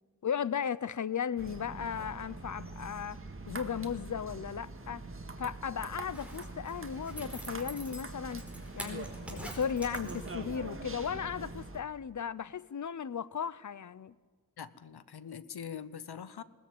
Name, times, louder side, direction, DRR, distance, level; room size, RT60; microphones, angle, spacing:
voice 1, 0.2-3.2 3.5-5.0 5.4-8.4 8.7-14.1, left 7 dB, 50° left, 0.7 m, -36 dB
sound 1, 1.4-11.8, right 3 dB, 35° right, 2.0 m, -43 dB
Zipper (clothing), 5.9-10.5 10.9-11.0, right 1 dB, 5° right, 4.6 m, -47 dB
voice 2, 14.6-16.4, left 7 dB, 85° left, 1.0 m, -43 dB
20.5 x 19.5 x 9.3 m
wide cardioid pair, 95°, 38 cm